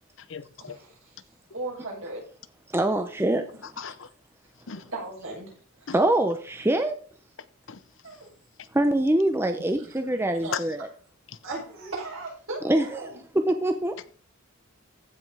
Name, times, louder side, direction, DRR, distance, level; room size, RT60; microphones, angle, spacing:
voice 1, 0.2-0.8 3.6-4.1 4.7-4.9 5.9-6.0 7.7-7.8 8.6-8.7 10.5-10.7 11.3-11.4, left 7 dB, 60° left, 0.7 m, -36 dB
voice 2, 1.5-2.2 4.9-5.5 5.8-6.0 8.0-8.3 10.1-10.6 11.4-13.2, right 2 dB, 70° right, 6.7 m, -37 dB
voice 3, 2.7-3.4 5.9-7.0 8.7-10.9 12.6-13.0 13.5-13.9, right 1 dB, 10° right, 0.6 m, -24 dB
15.0 x 5.3 x 4.8 m
head